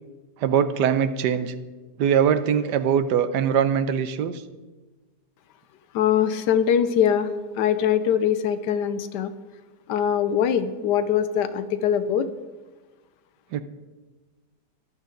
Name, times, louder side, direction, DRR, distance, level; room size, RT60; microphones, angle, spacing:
voice 1, 0.4-1.5 2.0-4.4 13.5-13.6, right 8 dB, 80° right, 12 dB, 1.3 m, -22 dB
voice 2, 5.9-7.3 7.6-9.3 9.9-12.3, left 9 dB, 75° left, 12 dB, 1.3 m, -22 dB
13.5 x 11.0 x 3.8 m, 1.3 s
omnidirectional pair, 1.8 m